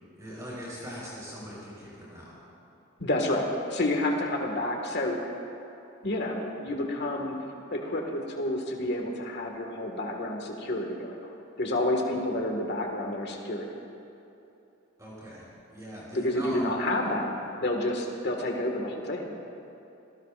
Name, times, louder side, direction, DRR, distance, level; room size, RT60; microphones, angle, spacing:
voice 1, 0.2-2.3 15.0-15.4 15.7-16.6, equal, 15° right, -7 dB, 4.3 m, -40 dB
voice 2, 3.0-5.2 6.0-7.4 7.7-11.3 11.6-13.8 16.1-17.3 17.6-19.4, left 1 dB, 55° left, 1 dB, 1.8 m, -29 dB
28.0 x 18.5 x 2.5 m, 2.9 s
head